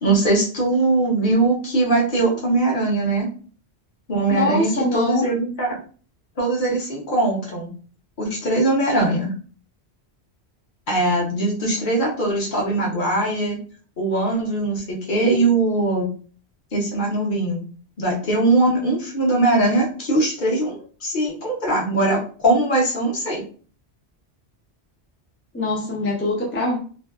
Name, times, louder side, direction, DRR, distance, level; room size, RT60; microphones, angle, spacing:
voice 1, 0.0-3.3 4.1-5.8 6.4-7.7 8.2-9.3 10.9-13.6 14.0-16.1 16.7-17.6 18.0-20.8 21.0-23.4, right 2 dB, 50° left, -3 dB, 1.0 m, -21 dB
voice 2, 4.3-5.2 25.5-26.8, left 2 dB, 15° left, -2 dB, 0.4 m, -23 dB
2.6 x 2.2 x 2.3 m, 0.41 s
omnidirectional pair, 1.1 m